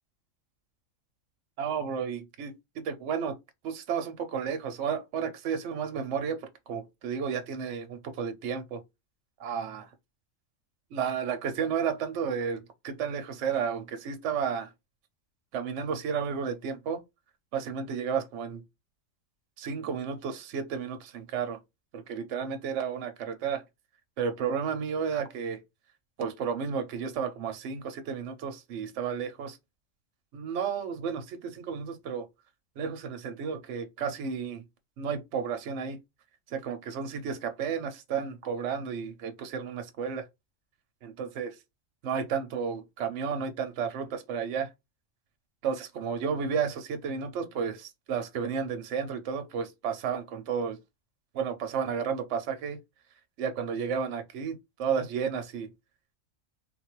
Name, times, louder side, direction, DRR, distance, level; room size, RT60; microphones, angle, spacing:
voice 1, 1.6-3.4 3.6-8.8 9.4-9.9 10.9-14.7 15.5-17.0 17.5-18.6 19.6-21.6 21.9-23.6 24.2-25.6 26.2-29.6 30.3-32.3 32.8-34.6 35.0-36.0 36.5-40.3 41.0-41.6 42.0-44.7 45.6-50.8 51.3-52.8 53.4-55.7, right 6 dB, 70° right, 0.9 m, -32 dB
3.7 x 2.3 x 2.9 m
omnidirectional pair, 1.4 m